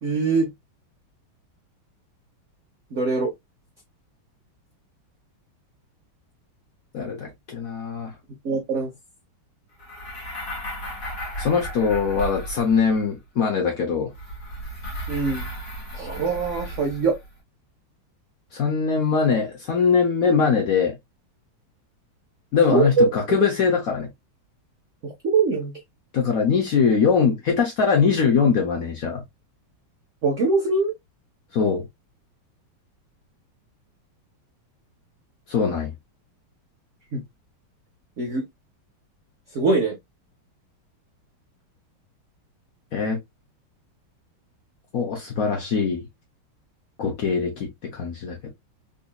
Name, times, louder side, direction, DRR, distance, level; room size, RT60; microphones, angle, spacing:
voice 1, 0.0-0.5 2.9-3.3 8.4-8.9 15.1-15.5 15.9-17.2 22.7-23.1 25.2-25.7 30.2-30.9 37.1-37.2 38.2-38.4 39.5-39.9, right 4 dB, 75° right, 0.7 m, -22 dB
voice 2, 6.9-8.1 11.4-14.1 18.5-21.0 22.5-24.1 26.1-29.2 31.5-31.8 35.5-35.9 42.9-43.2 44.9-46.0 47.0-48.5, left 6 dB, 60° left, 0.9 m, -22 dB
sound 1, 9.8-13.0 14.1-17.3, equal, 45° left, 1.9 m, -34 dB
3.9 x 2.6 x 2.2 m
omnidirectional pair, 2.3 m